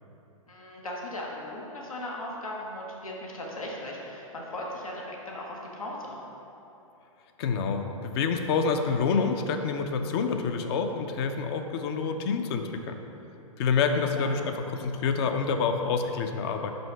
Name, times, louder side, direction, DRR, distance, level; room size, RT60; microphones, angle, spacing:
voice 1, 0.5-6.2 14.2-14.3, left 1 dB, 90° left, -2 dB, 1.2 m, -37 dB
voice 2, 7.4-13.0 13.6-16.7, left 5 dB, 45° left, 6 dB, 0.6 m, -27 dB
5.6 x 5.3 x 4.6 m, 3.0 s
hypercardioid pair, 115°, 17 cm